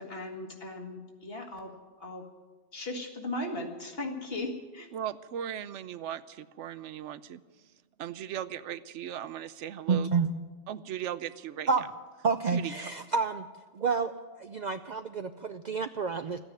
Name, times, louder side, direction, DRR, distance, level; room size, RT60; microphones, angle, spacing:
voice 1, 0.0-1.7 2.0-2.3 2.7-4.9, left 2 dB, 55° left, 3 dB, 2.0 m, -37 dB
voice 2, 4.9-7.4 8.0-10.1 10.7-11.9 12.5-12.9, right 10 dB, 85° right, 15 dB, 1.0 m, -38 dB
voice 3, 9.9-10.3 11.7-11.9 12.2-13.5 13.7-14.1 14.4-16.4, right 5 dB, 55° right, 9 dB, 0.5 m, -29 dB
13.5 x 9.7 x 9.3 m, 1.3 s
omnidirectional pair, 1.2 m